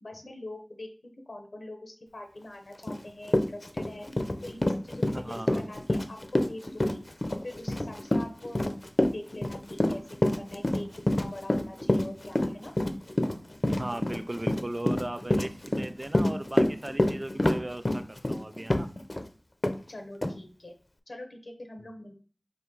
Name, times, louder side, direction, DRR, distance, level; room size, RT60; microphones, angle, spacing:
voice 1, 0.0-4.1 4.4-7.0 7.4-8.6 9.1-12.7 19.9-20.7 21.1-22.1, left 1 dB, 90° left, 4 dB, 0.7 m, -43 dB
Run, 2.9-3.0 3.3-19.3 19.6-19.8 20.2-20.3, left 1 dB, 45° left, 0.4 m, -27 dB
voice 2, 5.1-5.6 13.7-18.9, right 1 dB, 40° right, 9 dB, 0.4 m, -37 dB
4.2 x 2.6 x 3.7 m, 0.40 s
wide cardioid pair, 45°, 0 cm